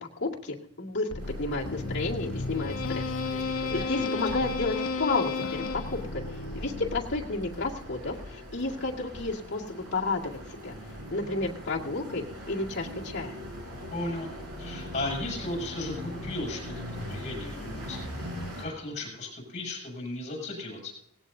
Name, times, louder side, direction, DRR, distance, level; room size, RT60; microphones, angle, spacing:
voice 1, 0.2-3.1 3.4-6.2 6.5-10.8 11.1-13.4, left 3 dB, 50° left, -3 dB, 2.0 m, -32 dB
sound 1, 1.1-7.4, left 4 dB, 65° left, 1.1 m, -33 dB
sound 2, 1.2-18.6, equal, 85° right, 5.1 m, -41 dB
voice 2, 3.9-4.5 13.9-14.3 14.6-18.0 18.6-20.9, left 2 dB, 30° left, 1 dB, 6.9 m, -36 dB
18.5 x 17.0 x 2.7 m, 0.71 s
head